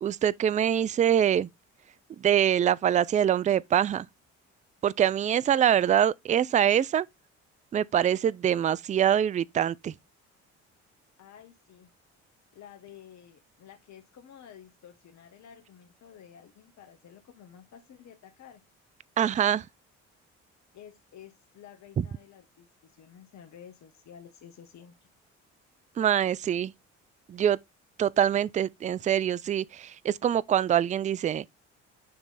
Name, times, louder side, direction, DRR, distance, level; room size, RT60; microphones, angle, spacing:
voice 1, 0.0-1.5 2.2-4.1 4.8-7.1 7.7-9.9 19.2-19.7 26.0-26.7 27.3-27.6 28.0-31.4, right 9 dB, 20° right, 0.3 m, -24 dB
voice 2, 11.2-11.9 12.5-18.6 20.7-25.1, left 9 dB, 50° left, 1.2 m, -51 dB
9.3 x 3.3 x 3.9 m
hypercardioid pair, 55°, 35 cm